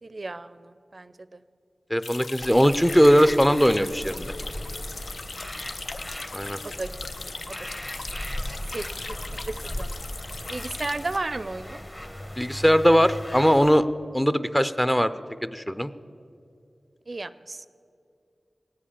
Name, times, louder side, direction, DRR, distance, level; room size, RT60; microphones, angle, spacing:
voice 1, 0.0-1.4 5.5-5.6 6.6-6.9 7.2-7.6 8.7-10.0 10.5-11.8 17.1-17.7, right 2 dB, 50° right, 14 dB, 0.4 m, -34 dB
voice 2, 1.9-4.3 6.3-6.6 12.4-13.9 14.1-15.1 15.4-15.9, equal, 10° left, 13 dB, 0.5 m, -20 dB
sound 1, 2.0-11.2, left 3 dB, 80° left, 0.6 m, -39 dB
sound 2, 2.4-13.8, left 1 dB, 25° left, 1.2 m, -37 dB
18.5 x 7.6 x 8.5 m, 2.6 s
wide cardioid pair, 60°, 0 cm